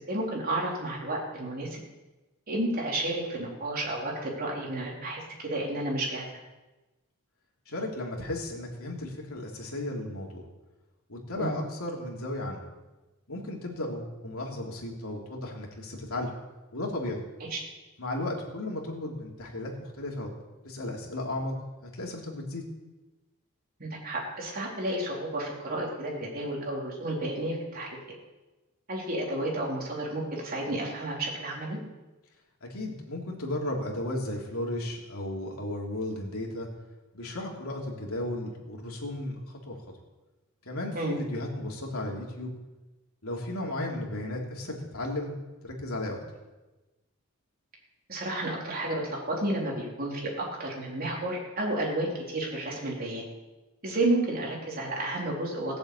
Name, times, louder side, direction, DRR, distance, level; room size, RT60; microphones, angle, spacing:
voice 1, 0.1-1.8 2.5-6.3 11.4-11.5 17.5-17.6 23.8-27.9 28.9-31.8 40.9-41.2 48.1-53.3 53.8-55.8, right 1 dB, 40° right, -2 dB, 4.0 m, -31 dB
voice 2, 7.7-10.4 11.1-12.6 13.3-16.3 16.7-17.2 18.0-20.3 20.6-21.6 21.8-22.7 32.6-36.7 37.1-39.8 40.6-42.5 43.2-45.3 45.6-46.2, left 1 dB, 70° left, -1 dB, 3.3 m, -34 dB
16.5 x 7.8 x 8.4 m, 1.1 s
head